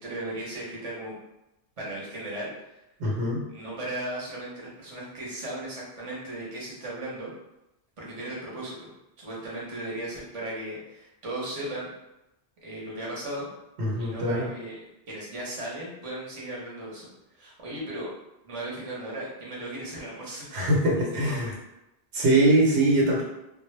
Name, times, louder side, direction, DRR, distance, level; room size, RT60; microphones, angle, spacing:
voice 1, 0.0-1.1 1.8-2.5 3.5-7.3 8.0-8.9 9.2-11.9 12.6-13.5 14.0-14.8 15.1-17.1 17.3-18.1 18.4-20.5 21.0-21.5, right 1 dB, 35° right, -5 dB, 0.8 m, -36 dB
voice 2, 3.0-3.4 13.8-14.5 20.5-21.5 22.1-23.2, right 1 dB, 80° right, -3 dB, 1.0 m, -22 dB
2.1 x 2.0 x 3.1 m, 0.91 s
omnidirectional pair, 1.1 m